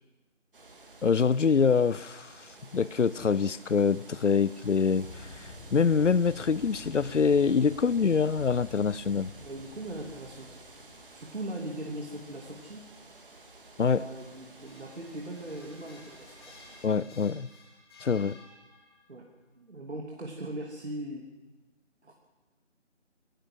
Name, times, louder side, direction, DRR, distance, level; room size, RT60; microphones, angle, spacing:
sound 1, 0.5-16.9, right 2 dB, 45° right, 3.2 m, -52 dB
voice 1, 1.0-2.3 2.7-5.1 5.7-9.3 13.8-14.0 16.8-17.5 18.0-18.4, left 5 dB, 75° left, 0.7 m, -25 dB
sound 2, 5.0-11.5, left 2 dB, 40° left, 3.8 m, -49 dB
voice 2, 9.4-10.6 11.1-12.8 13.8-16.5 19.1-19.3 19.6-21.3 22.0-22.1, right 1 dB, 65° right, 3.1 m, -39 dB
sound 3, 14.1-19.1, left 3 dB, 20° left, 3.0 m, -55 dB
23.5 x 16.5 x 7.7 m
figure-of-eight pair, 165°, 36 cm